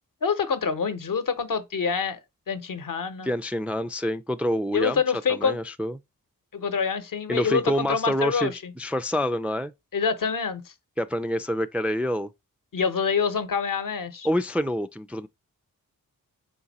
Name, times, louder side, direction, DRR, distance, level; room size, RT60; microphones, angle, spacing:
voice 1, 0.2-2.2 2.5-3.3 4.7-5.6 6.5-8.7 9.9-10.6 12.7-14.3, left 5 dB, 65° left, 0.9 m, -26 dB
voice 2, 3.2-5.0 5.3-6.0 7.3-8.5 8.8-9.7 11.0-12.3 14.2-15.3, equal, 5° right, 0.3 m, -27 dB
3.9 x 2.6 x 4.0 m
cardioid pair, 40°, 36 cm